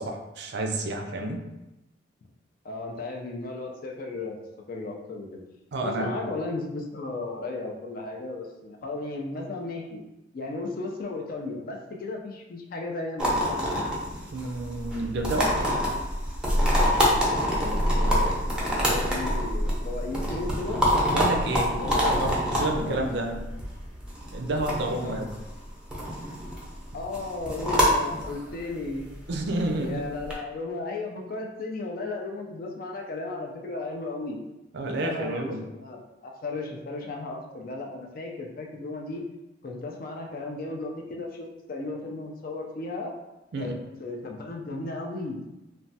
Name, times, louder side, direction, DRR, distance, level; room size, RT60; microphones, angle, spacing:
voice 1, 0.0-1.4 5.7-6.2 14.3-15.6 21.1-23.4 24.3-25.3 29.3-30.0 34.7-35.6 43.5-43.7, right 2 dB, 60° right, 3 dB, 0.4 m, -30 dB
voice 2, 2.6-4.3 4.7-5.4 5.8-10.0 10.3-13.9 17.4-20.8 21.8-22.2 22.5-23.1 25.0-25.2 26.9-29.0 29.8-34.4 34.9-39.2 39.6-43.1 43.6-43.7 44.0-45.4, left 3 dB, 50° left, 1 dB, 0.4 m, -35 dB
sound 1, 13.2-30.3, equal, 5° right, 0.5 m, -26 dB
3.1 x 2.2 x 2.7 m, 0.99 s
head